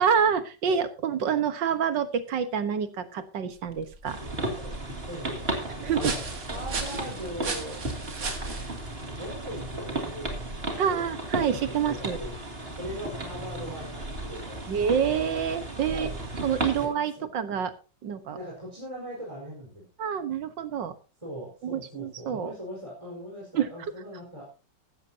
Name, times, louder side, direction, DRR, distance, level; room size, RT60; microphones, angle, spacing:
voice 1, 0.0-4.2 5.8-6.1 10.8-12.2 14.7-16.1 16.4-17.7 18.0-18.4 20.0-21.0 21.6-22.5 23.5-23.7, right 7 dB, 90° right, 11 dB, 2.0 m, -27 dB
sound 1, 3.6-11.0, right 4 dB, 50° right, 2.5 m, -38 dB
sound 2, 4.0-16.9, right 2 dB, 30° right, 2.9 m, -35 dB
voice 2, 4.1-7.8 9.0-11.1 11.5-12.4 12.8-14.7 15.9-16.1 16.7-17.2 18.3-19.8 21.2-24.5, equal, 15° right, -4 dB, 4.9 m, -40 dB
15.0 x 13.0 x 2.8 m, 0.33 s
omnidirectional pair, 1.9 m